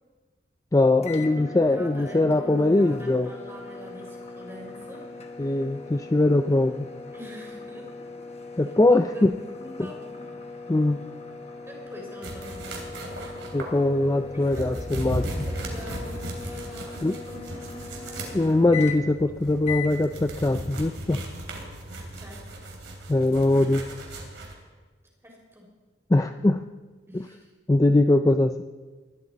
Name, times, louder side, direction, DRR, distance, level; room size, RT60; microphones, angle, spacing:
voice 1, 0.7-3.3 5.4-6.9 8.6-9.3 10.7-11.1 13.5-15.3 17.0-17.1 18.3-21.2 23.1-23.8 26.1-26.6 27.1-27.2 27.7-28.6, left 2 dB, 15° left, 7 dB, 0.3 m, -21 dB
sound 1, 1.0-19.3 19.6-20.0, left 4 dB, 35° left, 1.2 m, -40 dB
voice 2, 1.4-5.1 7.1-8.1 8.6-10.0 11.7-13.3 14.3-18.3 22.2-22.6 25.2-25.7 27.1-27.5, left 1 dB, 15° right, -1 dB, 3.8 m, -44 dB
sound 2, 12.2-24.5, right 1 dB, 75° right, 3.2 m, -37 dB
21.0 x 12.5 x 4.1 m, 1.4 s
head